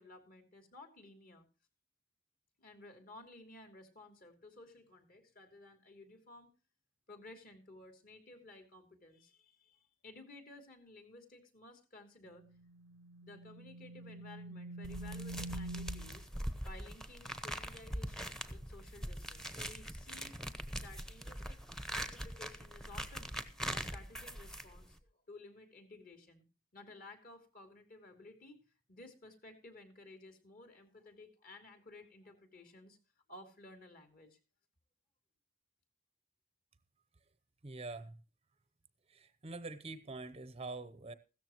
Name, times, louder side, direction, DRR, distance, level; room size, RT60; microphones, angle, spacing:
voice 1, 0.0-1.5 2.6-6.5 7.1-12.4 13.2-16.3 16.6-20.4 20.7-23.3 23.7-26.4 26.7-28.6 28.9-33.0 33.3-34.4, left 2 dB, 45° left, 3.0 m, -55 dB
sound 1, 12.3-16.2, right 1 dB, 85° right, 0.7 m, -46 dB
sound 2, 14.8-25.0, equal, 5° left, 1.0 m, -42 dB
voice 2, 37.6-38.2 39.1-41.1, right 3 dB, 30° right, 0.8 m, -45 dB
16.0 x 13.5 x 3.0 m
head